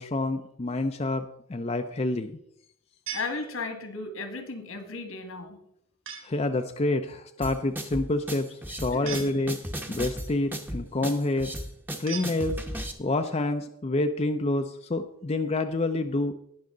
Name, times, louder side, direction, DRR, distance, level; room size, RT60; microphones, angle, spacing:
voice 1, 0.0-2.4 6.2-9.6 9.9-11.5 12.0-12.6 13.0-16.3, left 2 dB, 30° left, 7 dB, 0.5 m, -28 dB
voice 2, 3.1-5.6 9.0-9.3, left 3 dB, 80° left, 6 dB, 2.0 m, -35 dB
sound 1, 3.1-4.0 6.1-6.5 9.1-9.9 12.1-13.0, right 6 dB, 70° right, 3.7 m, -41 dB
sound 2, 7.4-12.9, right 1 dB, 10° right, 0.9 m, -35 dB
19.0 x 6.3 x 3.8 m, 0.73 s
head